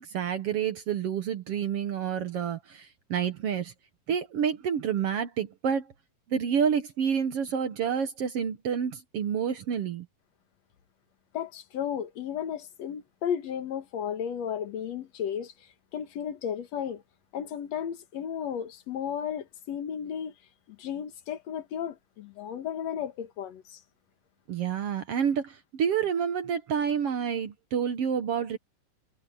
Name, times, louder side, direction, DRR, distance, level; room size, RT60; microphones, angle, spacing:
voice 1, 0.0-3.7 4.1-5.9 6.3-10.1 24.5-28.6, right 7 dB, 60° right, 1.8 m, -29 dB
voice 2, 11.3-15.5 15.9-17.0 17.3-20.3 20.7-23.8, left 8 dB, 60° left, 2.4 m, -34 dB
omnidirectional pair, 3.7 m